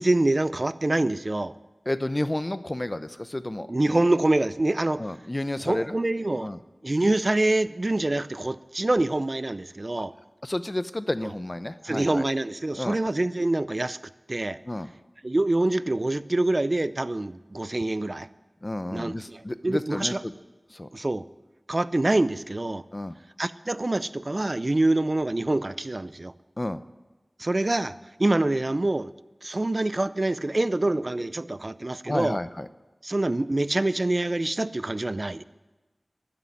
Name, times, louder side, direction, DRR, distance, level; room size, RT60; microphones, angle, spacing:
voice 1, 0.0-1.5 3.7-5.1 5.6-6.5 6.8-10.1 11.8-14.0 14.3-14.6 15.2-18.3 18.9-20.2 20.9-21.2 21.7-22.8 23.4-26.3 27.4-29.1 29.4-32.4 33.0-35.4, right 2 dB, 50° right, 0.5 m, -25 dB
voice 2, 1.9-3.7 5.0-5.9 6.4-6.6 10.4-12.2 12.8-13.0 14.7-14.9 18.6-20.3 20.7-20.9 22.9-23.2 26.6-26.8 32.1-32.7, left 1 dB, 35° left, 0.7 m, -31 dB
12.0 x 9.8 x 9.3 m
wide cardioid pair, 40°, 0 cm